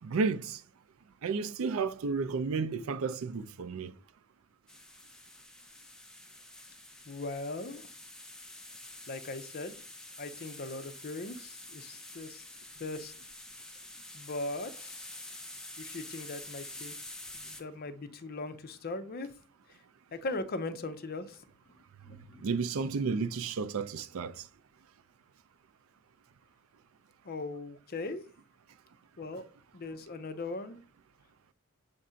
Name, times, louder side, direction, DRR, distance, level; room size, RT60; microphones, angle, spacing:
voice 1, 0.0-0.6 1.2-3.9 22.4-24.5, right 4 dB, 75° right, 0.4 m, -32 dB
sound 1, 4.7-17.6, left 1 dB, 5° left, 0.6 m, -48 dB
voice 2, 7.1-7.9 9.1-9.8 10.2-12.4 12.8-13.1 14.1-15.2 15.8-16.9 17.3-19.3 19.7-19.8 20.1-21.4 22.0-22.5 27.2-28.2 29.2-29.4 29.7-30.8, left 2 dB, 45° left, 0.6 m, -39 dB
7.0 x 2.5 x 5.5 m
head